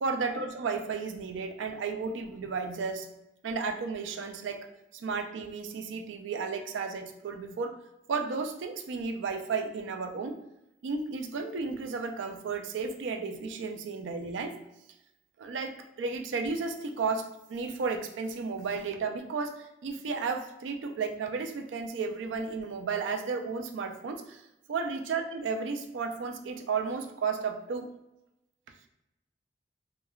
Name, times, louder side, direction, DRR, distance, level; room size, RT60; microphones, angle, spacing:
voice 1, 0.0-3.1 3.4-4.7 4.9-7.8 8.1-10.4 10.8-14.6 15.4-24.4 24.7-27.9, right 4 dB, 85° right, 5 dB, 0.4 m, -33 dB
3.0 x 2.2 x 2.3 m, 0.91 s
head